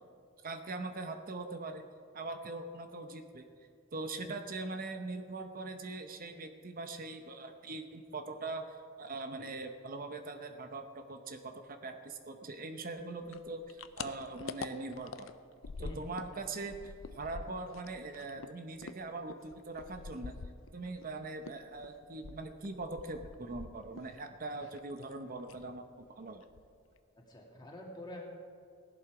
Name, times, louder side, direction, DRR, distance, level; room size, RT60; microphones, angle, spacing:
voice 1, 0.4-1.8 2.1-3.5 3.9-15.3 15.8-20.4 20.7-26.5, right 3 dB, 45° right, 6 dB, 0.8 m, -42 dB
sound 1, 13.3-16.4 16.6-21.1 21.4-24.2 24.4-25.1 25.4-25.7 26.0-26.1 26.4-27.0, left 4 dB, 75° left, 0.6 m, -46 dB
voice 2, 15.8-16.1 27.1-28.2, left 1 dB, 20° left, -2 dB, 2.2 m, -47 dB
16.0 x 11.5 x 4.9 m, 2.3 s
head